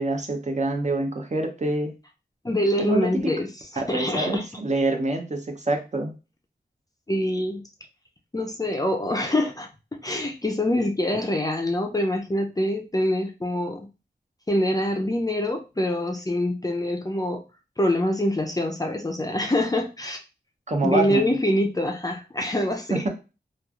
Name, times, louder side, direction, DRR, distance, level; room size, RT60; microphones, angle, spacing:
voice 1, 0.0-1.9 2.8-3.1 3.9-6.2 20.7-21.3 22.9-23.1, right 2 dB, 40° right, 3 dB, 0.6 m, -26 dB
voice 2, 2.4-3.5 3.7-4.4 7.1-7.6 8.3-9.7 10.0-13.9 14.5-17.4 17.8-20.2 20.8-23.1, left 1 dB, 20° left, 3 dB, 0.4 m, -25 dB
3.0 x 2.3 x 2.3 m, 0.30 s
wide cardioid pair, 70°, 18 cm